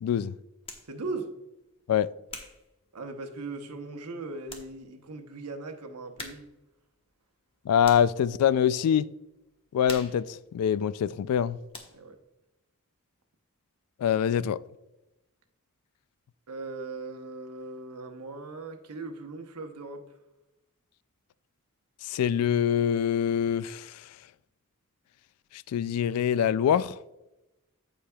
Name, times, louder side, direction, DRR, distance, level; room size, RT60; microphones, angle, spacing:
voice 1, 0.0-0.3 1.9-2.1 7.7-9.1 9.7-11.6 14.0-14.6 22.0-24.0 25.7-26.9, left 8 dB, 75° left, 0.3 m, -24 dB
sound 1, 0.6-0.9 1.6-3.6 4.1-4.2 4.4-4.8 5.1-5.2 6.2-6.6 6.9-8.2 8.7-9.0 9.3-11.4 11.7-12.2, left 3 dB, 25° left, 1.1 m, -45 dB
voice 2, 0.9-1.3 2.9-6.5 11.9-12.2 16.5-20.1, right 3 dB, 90° right, 0.9 m, -39 dB
14.0 x 5.0 x 2.3 m
head